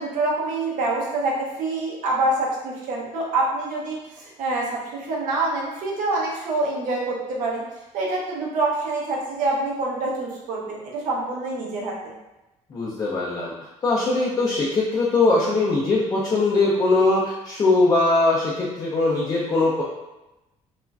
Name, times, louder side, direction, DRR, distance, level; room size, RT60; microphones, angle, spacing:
voice 1, 0.0-12.1, right 2 dB, 80° right, -3 dB, 0.7 m, -26 dB
voice 2, 12.7-13.5 13.8-19.8, left 2 dB, 30° left, -6 dB, 0.4 m, -21 dB
3.0 x 2.4 x 2.3 m, 1.0 s
cardioid pair, 140°, 13 cm